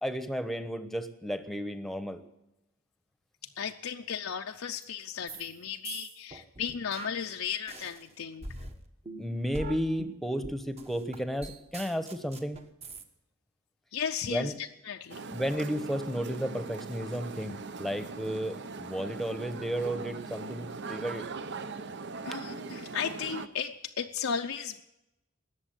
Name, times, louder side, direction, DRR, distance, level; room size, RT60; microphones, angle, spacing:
voice 1, 0.0-2.2 9.2-12.6 14.2-14.5 15.3-21.3, equal, ahead, 10 dB, 1.0 m, -33 dB
voice 2, 3.6-8.5 13.9-15.2 22.2-24.8, left 7 dB, 80° left, 3 dB, 0.6 m, -35 dB
sound 1, 5.3-5.5 5.8-8.0 8.4-13.0, right 2 dB, 30° right, 1.1 m, -43 dB
sound 2, 15.1-23.5, right 4 dB, 55° right, 0.7 m, -40 dB
19.0 x 7.2 x 8.8 m, 0.91 s
head